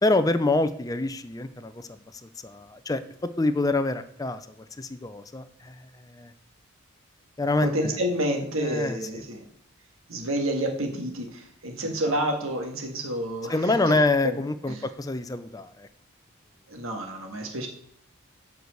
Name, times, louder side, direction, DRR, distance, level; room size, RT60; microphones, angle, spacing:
voice 1, 0.0-3.0 3.4-4.4 4.8-5.8 6.1-6.3 7.4-7.9 8.6-9.2 13.5-15.9, left 2 dB, 15° left, 10 dB, 0.5 m, -26 dB
voice 2, 7.6-9.4 10.1-13.9 14.2-14.4 14.7-14.8 16.7-17.7, right 1 dB, 80° right, 3 dB, 1.8 m, -29 dB
7.8 x 4.7 x 6.5 m, 0.69 s
head